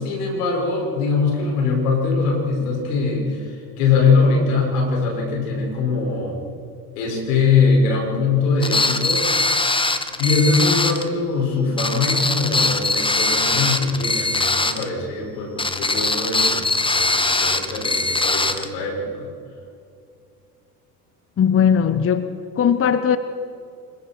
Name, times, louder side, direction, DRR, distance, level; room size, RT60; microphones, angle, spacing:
voice 1, 0.0-6.4 7.0-9.6 10.2-19.3, left 4 dB, 70° left, 0 dB, 5.8 m, -22 dB
sound 1, 8.6-11.1 11.8-14.9 15.6-18.7, left 3 dB, 10° left, 1.4 m, -21 dB
voice 2, 21.4-23.2, left 8 dB, 30° left, 12 dB, 1.0 m, -18 dB
25.5 x 22.5 x 4.5 m, 2.5 s
hypercardioid pair, 70°, 48 cm